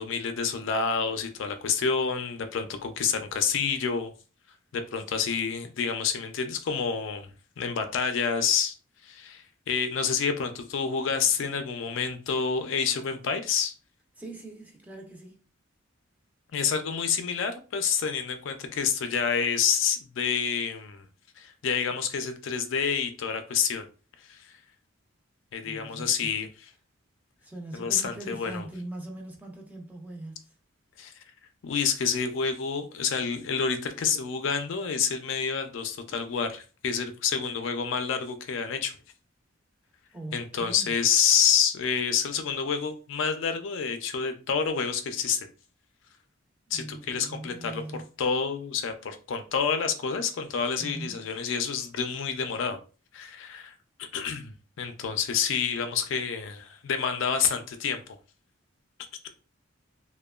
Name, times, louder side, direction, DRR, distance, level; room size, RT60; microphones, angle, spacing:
voice 1, 0.0-4.1 4.7-8.7 9.0-13.7 16.5-21.1 21.4-23.8 24.3-24.6 25.5-26.5 27.7-28.6 31.0-31.1 31.6-39.0 40.3-45.5 46.7-52.8 53.1-58.0, left 6 dB, 65° left, 0.4 m, -28 dB
voice 2, 14.2-15.4 25.6-26.3 27.4-30.5 40.1-40.9 46.7-48.0 50.8-51.2, right 2 dB, 10° right, 0.4 m, -41 dB
2.8 x 2.1 x 2.3 m
head